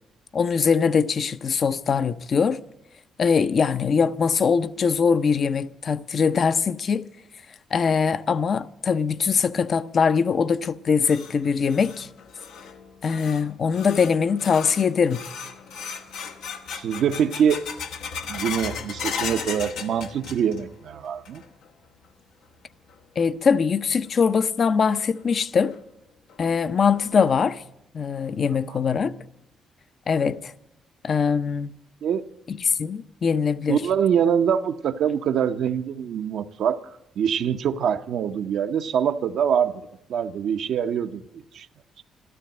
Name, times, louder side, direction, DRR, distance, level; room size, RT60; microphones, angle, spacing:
voice 1, 0.3-2.6 3.2-7.1 7.7-12.1 13.0-15.2 23.2-25.8 26.4-27.6 27.9-29.1 30.1-30.5 31.0-31.7 32.5-33.8, left 6 dB, 50° left, 0.6 m, -22 dB
sound 1, 10.6-20.8 21.0-21.7 22.0-22.1 22.9-23.0 24.6-24.7 25.2-25.3 25.7-25.8 26.3-26.4 26.9-27.3, left 6 dB, 85° left, 1.2 m, -36 dB
voice 2, 16.7-17.6 18.3-21.4 28.7-28.8 32.0-32.2 33.7-36.9 37.2-41.7, right 8 dB, 70° right, 0.7 m, -24 dB
13.5 x 13.0 x 7.7 m
cardioid pair, 90°, 0 cm